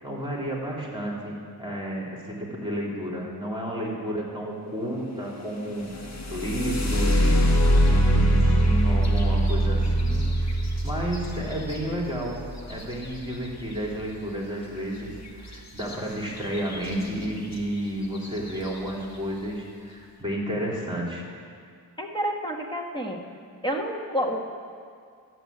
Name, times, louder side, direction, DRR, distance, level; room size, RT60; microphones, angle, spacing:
voice 1, 0.0-6.0 6.3-7.4 7.8-10.5 10.8-12.4 12.7-21.3, equal, 10° right, -3 dB, 3.3 m, -31 dB
sound 1, 5.9-13.7 15.8-15.9 16.4-16.9 17.5-17.6 18.1-18.5, right 1 dB, 45° left, 1.4 m, -23 dB
voice 2, 22.0-23.2 23.6-24.4, equal, 10° left, 1 dB, 1.6 m, -29 dB
12.0 x 8.1 x 8.7 m, 2.2 s
wide cardioid pair, 65°, 39 cm